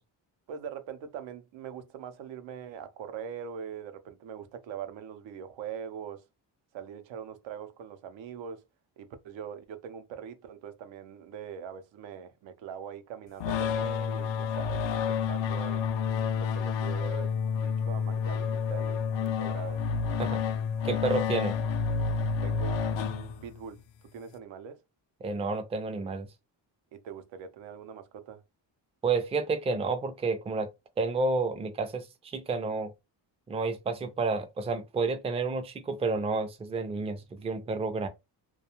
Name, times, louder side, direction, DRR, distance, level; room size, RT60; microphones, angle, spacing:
voice 1, 0.5-6.2 6.7-8.6 9.0-15.9 16.3-17.3 17.6-19.8 22.4-23.8 24.1-24.8 26.9-28.4, right 8 dB, 90° right, 0.6 m, -42 dB
sound 1, 13.4-23.7, left 6 dB, 80° left, 0.5 m, -29 dB
voice 2, 20.8-21.6 25.2-26.3 29.0-30.7 31.0-32.1 32.3-32.9 33.5-38.1, right 3 dB, 15° right, 0.3 m, -30 dB
2.3 x 2.2 x 2.9 m
cardioid pair, 110°, 44 cm